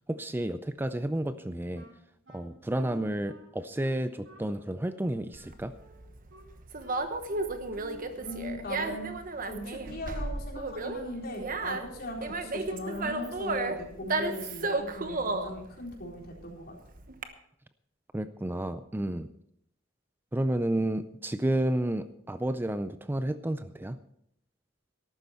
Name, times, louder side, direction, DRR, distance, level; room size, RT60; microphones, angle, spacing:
voice 1, 0.1-1.9 2.3-5.7 18.1-19.3 20.3-24.0, right 1 dB, 10° right, 11 dB, 0.4 m, -31 dB
Wind instrument woodwind instrument, 1.7-9.3, right 1 dB, 75° right, 4.5 m, -54 dB
Conversation, 5.3-17.2, right 3 dB, 45° right, 1.1 m, -34 dB
voice 2, 8.2-9.1 9.4-16.7, left 1 dB, 55° left, -1 dB, 4.1 m, -39 dB
13.5 x 12.0 x 4.4 m, 0.72 s
head